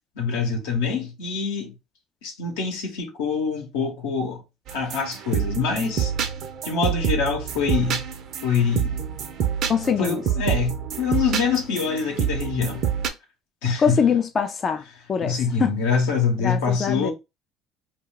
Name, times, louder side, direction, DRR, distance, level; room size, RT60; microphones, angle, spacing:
voice 1, 0.2-1.7 2.2-4.4 4.7-6.1 6.6-8.0 8.4-9.0 10.0-12.8 13.6-14.0 15.2-17.1, left 5 dB, 85° left, 0.8 m, -25 dB
sound 1, 4.7-13.1, right 8 dB, 60° right, 0.5 m, -27 dB
voice 2, 9.7-10.2 13.8-15.7 16.4-17.1, left 6 dB, 40° left, 0.3 m, -23 dB
2.3 x 2.2 x 3.7 m
supercardioid pair, 80°, 0 cm